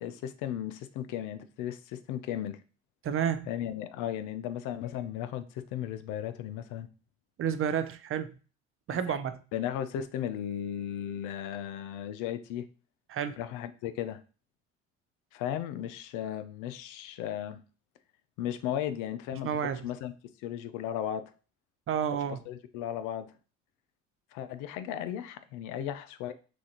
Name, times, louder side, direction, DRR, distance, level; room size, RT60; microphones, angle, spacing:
voice 1, 0.0-2.6 3.5-6.9 8.9-9.2 9.5-12.7 13.4-14.2 15.3-17.6 18.4-20.1 20.4-21.3 22.3-23.3 24.3-26.3, left 10 dB, 75° left, 0.6 m, -36 dB
voice 2, 3.0-3.5 7.4-8.3 8.9-9.4 13.1-13.4 19.4-19.9 21.9-22.4, right 8 dB, 45° right, 0.6 m, -30 dB
6.1 x 2.6 x 2.9 m
supercardioid pair, 70°, 31 cm